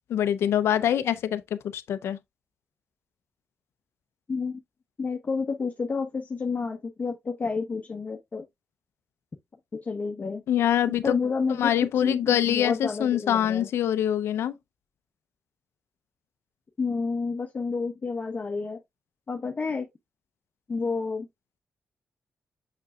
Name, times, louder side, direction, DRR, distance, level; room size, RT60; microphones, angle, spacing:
voice 1, 0.1-2.2 10.5-11.2 11.6-14.5, left 10 dB, 85° left, 0.6 m, -24 dB
voice 2, 4.3-4.6 5.0-8.5 9.8-10.4 11.0-11.7 12.0-13.7 16.8-18.8 19.3-19.9 20.7-21.3, left 4 dB, 40° left, 1.0 m, -30 dB
6.7 x 6.0 x 2.3 m
cardioid pair, 85°, 4 cm